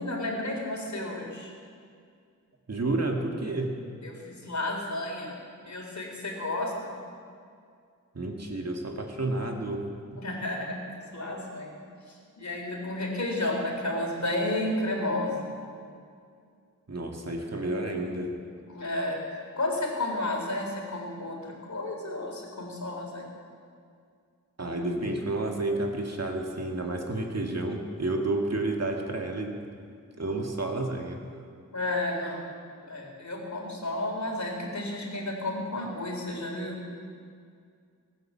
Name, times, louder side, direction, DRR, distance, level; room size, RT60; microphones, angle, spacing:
voice 1, 0.0-1.5 4.0-5.4 5.7-6.9 10.2-10.8 11.1-11.8 12.1-15.5 18.7-19.2 19.6-23.3 31.7-32.5 32.8-36.8, left 1 dB, 55° left, 0 dB, 3.7 m, -32 dB
voice 2, 2.7-3.7 8.1-9.9 10.1-10.2 16.9-18.4 24.6-29.6 30.2-31.2, right 2 dB, 50° right, 2 dB, 2.0 m, -30 dB
19.5 x 9.3 x 7.4 m, 2.3 s
wide cardioid pair, 65°, 33 cm